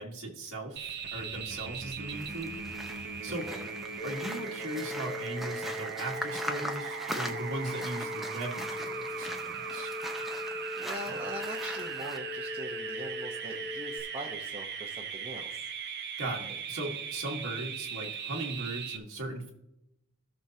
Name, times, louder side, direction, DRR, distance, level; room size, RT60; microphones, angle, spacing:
voice 1, 0.0-3.5 4.0-9.9 16.2-19.5, right 2 dB, 75° right, -3 dB, 1.6 m, -38 dB
sound 1, 0.8-19.0, right 6 dB, 50° right, 0.9 m, -39 dB
sound 2, 2.1-12.2, equal, ahead, 1.0 m, -41 dB
voice 2, 3.3-3.6 10.8-15.7, right 1 dB, 25° right, 0 dB, 1.0 m, -42 dB
sound 3, 4.0-14.0, left 4 dB, 45° left, 1.3 m, -41 dB
17.0 x 6.4 x 2.8 m, 0.87 s
head